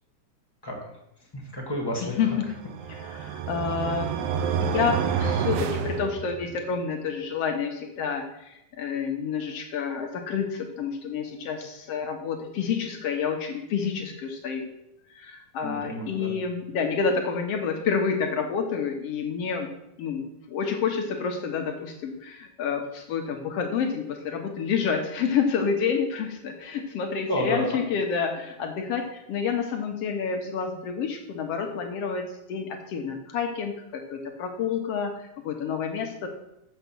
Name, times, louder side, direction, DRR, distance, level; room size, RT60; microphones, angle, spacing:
voice 1, 0.6-1.0 1.3-2.4 15.6-16.3 27.3-27.6, left 1 dB, 10° left, -2 dB, 1.1 m, -31 dB
voice 2, 2.2-2.5 3.1-4.3 4.6-14.7 15.1-19.7 20.0-36.3, left 6 dB, 65° left, 3 dB, 1.6 m, -29 dB
sound 1, 2.4-6.7, right 7 dB, 80° right, 1.5 m, -29 dB
7.0 x 6.8 x 6.1 m, 0.84 s
omnidirectional pair, 3.6 m